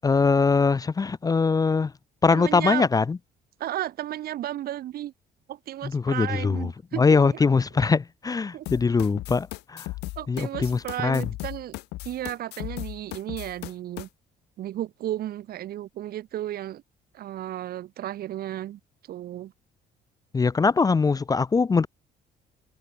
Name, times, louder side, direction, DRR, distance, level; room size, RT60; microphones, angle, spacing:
voice 1, 0.0-1.9 2.2-3.2 5.8-6.7 7.0-9.9 10.3-11.2 20.3-21.9, left 4 dB, 20° left, 0.7 m, -22 dB
voice 2, 2.3-2.9 3.6-5.1 5.5-7.4 8.5-8.7 10.2-11.8 12.0-14.1 14.6-16.8 17.1-18.8 19.1-19.5, right 13 dB, 65° right, 2.2 m, -33 dB
sound 1, 8.7-14.1, left 20 dB, 90° left, 1.4 m, -37 dB
cardioid pair, 110°, 17 cm